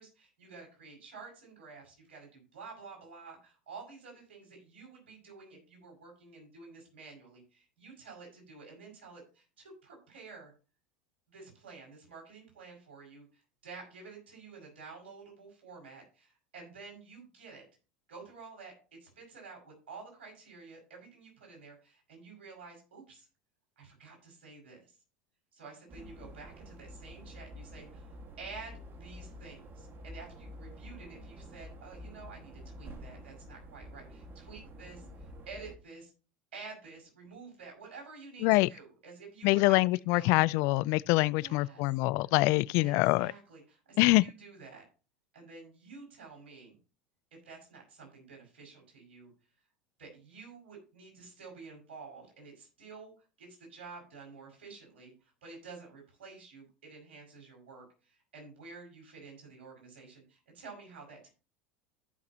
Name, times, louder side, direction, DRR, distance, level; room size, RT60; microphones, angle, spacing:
voice 1, 0.0-10.5 11.3-17.6 18.1-23.3 23.8-25.0 25.5-28.1 28.4-36.1 36.5-40.5 41.3-42.0 42.2-42.3 42.8-44.8 45.3-46.8 47.3-49.3 50.0-53.1 53.4-61.3, right 4 dB, 75° right, 5.6 m, -50 dB
sound 1, 25.9-35.7, equal, 35° right, 1.7 m, -48 dB
voice 2, 39.4-43.3 44.0-44.2, left 21 dB, 55° left, 0.3 m, -25 dB
14.5 x 5.9 x 2.9 m
hypercardioid pair, 80°, 6 cm